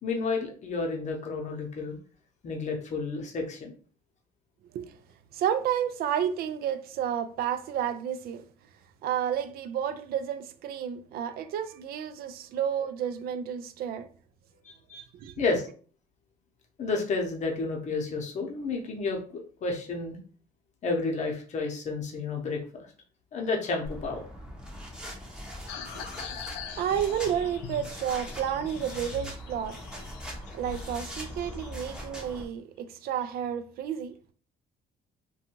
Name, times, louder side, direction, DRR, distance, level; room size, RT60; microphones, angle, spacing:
voice 1, 0.0-2.0 2.4-3.7 14.6-15.0 15.4-15.7 16.8-20.2 20.8-22.9 23.3-24.2, left 3 dB, 45° left, 0.8 m, -31 dB
voice 2, 5.3-8.4 9.0-14.1 14.9-15.3 26.8-29.8 30.5-34.3, right 9 dB, 65° right, 0.4 m, -31 dB
sound 1, 23.8-32.4, equal, 5° right, 0.7 m, -41 dB
sound 2, 25.7-32.0, left 8 dB, 85° left, 0.4 m, -43 dB
2.6 x 2.3 x 2.9 m
cardioid pair, 110°, 17 cm